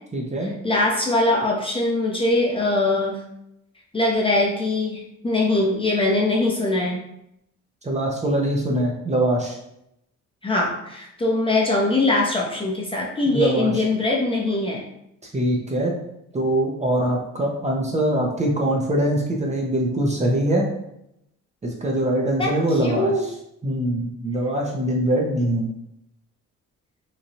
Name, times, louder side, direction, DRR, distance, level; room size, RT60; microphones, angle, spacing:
voice 1, 0.1-0.5 7.8-9.6 13.3-13.8 15.3-15.9 16.3-20.7 21.6-23.3 23.6-25.7, right 1 dB, 25° right, -2 dB, 0.6 m, -23 dB
voice 2, 0.6-3.2 3.9-7.0 10.4-14.8 22.4-22.5 22.8-23.2, left 2 dB, 20° left, -2 dB, 0.6 m, -22 dB
3.0 x 2.3 x 2.7 m, 0.79 s
cardioid pair, 90°, 30 cm